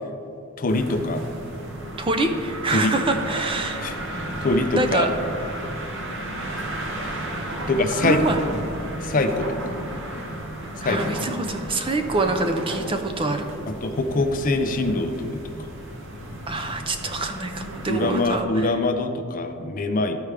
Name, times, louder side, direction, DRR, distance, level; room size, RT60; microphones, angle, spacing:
voice 1, 0.6-1.3 2.7-2.9 3.8-5.1 7.7-8.2 9.0-9.7 10.8-11.2 13.7-15.4 17.9-20.2, left 2 dB, 40° left, 7 dB, 0.5 m, -24 dB
sound 1, 0.7-18.4, right 1 dB, 60° right, 0.9 m, -33 dB
voice 2, 2.0-3.8 4.7-5.1 7.9-8.4 10.8-13.5 16.5-18.8, right 2 dB, 25° right, 5 dB, 0.5 m, -25 dB
13.0 x 4.8 x 3.3 m, 2.6 s
head